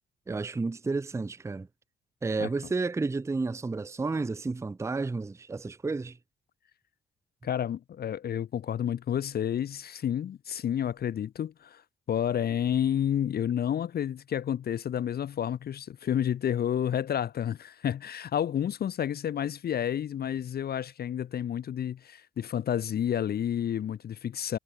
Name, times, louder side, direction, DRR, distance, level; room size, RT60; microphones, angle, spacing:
voice 1, 0.3-1.7 2.2-6.2, right 3 dB, 15° right, 0.6 m, -31 dB
voice 2, 7.4-11.8 12.1-24.6, left 9 dB, 50° left, 0.8 m, -30 dB
cardioid pair, 90°, 20 cm